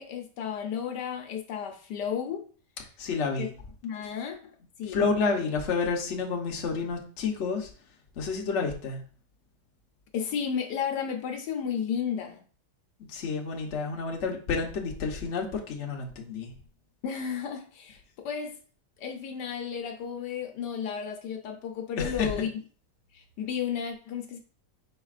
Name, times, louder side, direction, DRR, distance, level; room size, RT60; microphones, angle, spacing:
voice 1, 0.0-2.4 3.4-3.5 3.8-5.0 10.1-12.4 17.0-18.6 19.0-22.5 23.1-24.4, left 7 dB, 75° left, 1.3 m, -33 dB
voice 2, 3.0-3.5 4.9-7.7 8.2-9.0 13.1-16.5 22.0-22.3, left 4 dB, 50° left, 1.0 m, -29 dB
5.0 x 4.4 x 2.4 m
omnidirectional pair, 1.8 m